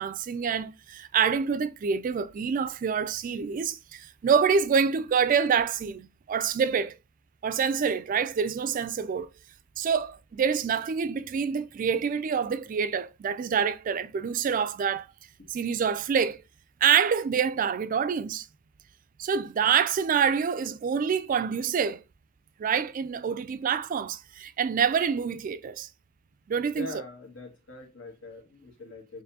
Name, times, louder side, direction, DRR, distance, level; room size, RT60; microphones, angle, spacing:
voice 1, 0.0-7.0 7.4-9.3 9.8-15.1 15.5-16.4 16.8-18.5 19.2-22.0 22.6-25.9 26.5-26.9, right 6 dB, 40° right, 0.3 m, -26 dB
voice 2, 26.7-29.2, left 2 dB, 75° left, 1.6 m, -42 dB
6.5 x 2.6 x 2.6 m
head